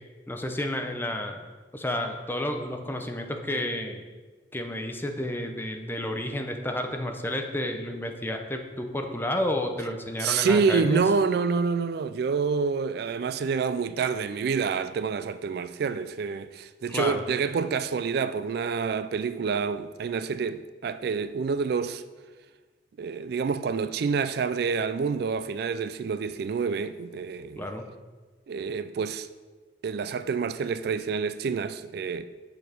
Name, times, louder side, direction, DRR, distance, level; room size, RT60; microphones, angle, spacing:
voice 1, 0.3-1.4 1.7-4.0 4.5-11.0 16.9-17.2 27.6-27.8, left 1 dB, 10° left, 0.8 m, -31 dB
voice 2, 10.2-22.0 23.0-27.7 28.5-29.3 29.8-32.3, right 5 dB, 60° right, 0.3 m, -27 dB
8.1 x 6.9 x 5.1 m
head